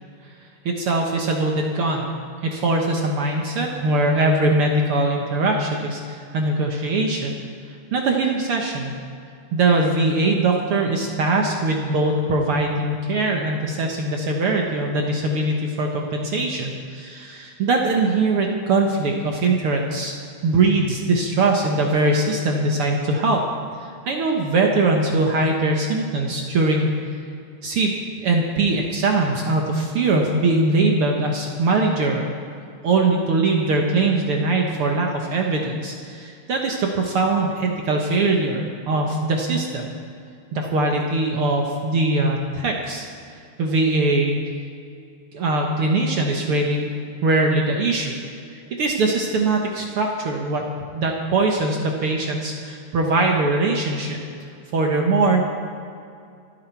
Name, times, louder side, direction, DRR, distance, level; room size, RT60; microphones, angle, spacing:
voice 1, 0.6-2.1 2.4-7.3 7.9-8.9 9.5-20.1 20.4-23.4 23.8-26.9 27.6-27.9 28.2-32.3 32.8-39.9 40.5-43.0 43.6-44.4 45.3-46.9 47.2-48.1 48.8-50.6 50.9-54.2 54.7-55.6, right 2 dB, 65° right, 1 dB, 1.3 m, -21 dB
26.5 x 9.5 x 4.6 m, 2.4 s
omnidirectional pair, 4.1 m